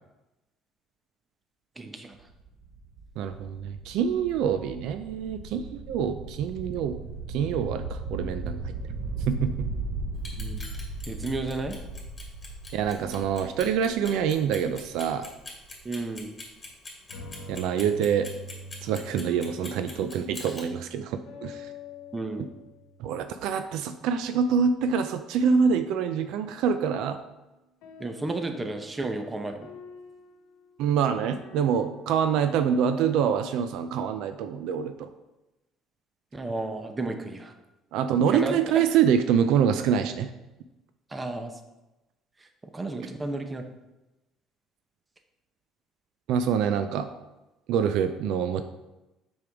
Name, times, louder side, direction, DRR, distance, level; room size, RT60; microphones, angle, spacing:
voice 1, 1.8-2.1 10.4-10.6 11.1-11.8 15.8-16.3 22.1-22.5 28.0-29.7 36.3-37.5 38.3-38.6 41.1-41.5 42.7-43.6, right 2 dB, 15° right, 6 dB, 0.8 m, -32 dB
sound 1, 2.1-15.9, right 2 dB, 55° right, 0.8 m, -37 dB
voice 2, 3.2-7.0 7.3-8.7 9.3-9.7 12.7-15.3 17.5-18.3 18.8-21.7 23.0-27.2 30.8-35.1 37.9-40.3 46.3-47.1 47.7-48.6, right 7 dB, 75° right, 9 dB, 0.4 m, -26 dB
Clock, 10.1-20.6, left 3 dB, 20° left, 2.1 m, -43 dB
sound 2, 17.1-23.6 26.1-32.6 33.4-34.1, left 2 dB, 80° left, 1.0 m, -47 dB
6.7 x 5.3 x 3.5 m, 1.0 s
cardioid pair, 115°, 0 cm